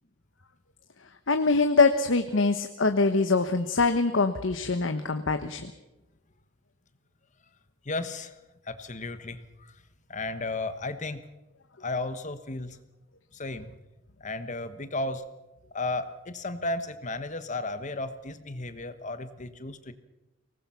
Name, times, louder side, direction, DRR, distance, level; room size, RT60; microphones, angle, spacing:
voice 1, 1.3-5.7, left 3 dB, 80° left, 8 dB, 1.0 m, -24 dB
voice 2, 7.8-8.4 8.6-9.8 10.1-11.2 11.8-12.8 13.3-13.8 14.2-15.2 15.7-19.9, left 2 dB, 40° left, 11 dB, 1.3 m, -34 dB
24.0 x 19.5 x 5.8 m, 0.98 s
head